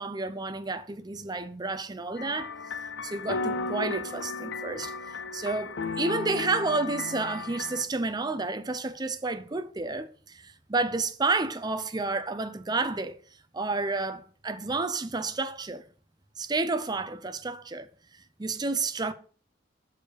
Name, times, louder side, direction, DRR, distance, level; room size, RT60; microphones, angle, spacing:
voice 1, 0.0-2.5 3.0-13.2 13.5-15.8 16.4-17.9 18.4-19.1, right 3 dB, 20° right, 0.6 m, -30 dB
sound 1, 2.2-7.8, left 4 dB, 70° left, 0.6 m, -35 dB
6.7 x 4.8 x 6.3 m
head